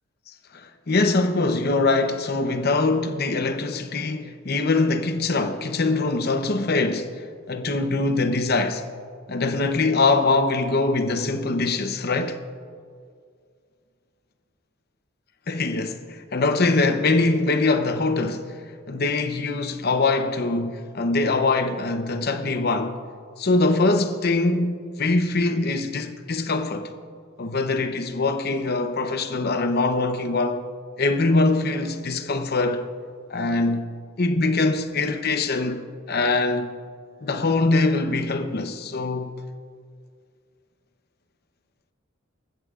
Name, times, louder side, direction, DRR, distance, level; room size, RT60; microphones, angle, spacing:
voice 1, 0.5-7.1 7.5-8.8 9.3-12.4 15.5-18.6 18.9-23.0 23.4-26.9 27.4-30.6 31.0-32.8 33.3-33.8 34.2-35.8 36.1-36.7 37.2-39.3, left 3 dB, 50° left, 0.9 m, -23 dB
26.0 x 14.5 x 2.5 m
head